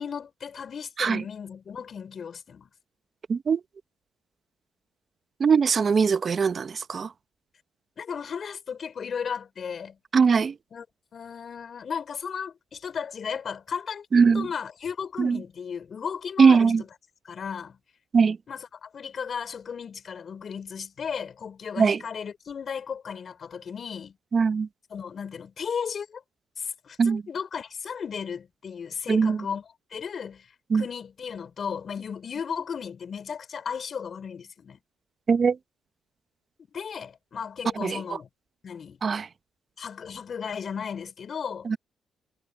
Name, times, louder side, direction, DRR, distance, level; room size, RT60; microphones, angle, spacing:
voice 1, 0.0-2.7 8.0-10.0 10.7-10.9 11.1-14.1 14.3-16.8 17.3-17.8 18.5-24.2 24.9-26.2 26.6-30.5 30.7-34.8 36.7-38.3 38.6-39.0 39.8-41.7, left 6 dB, 50° left, 5.2 m, -35 dB
voice 2, 3.3-3.6 5.4-7.1 10.1-10.5 14.1-14.5 15.2-15.4 16.4-16.8 18.1-18.4 21.8-22.0 24.3-24.7 27.0-27.2 29.1-29.4 30.7-30.8 35.3-35.6 37.8-38.0 39.0-39.3 41.6-41.8, right 5 dB, 45° right, 0.8 m, -21 dB
cardioid pair, 90°, 0 cm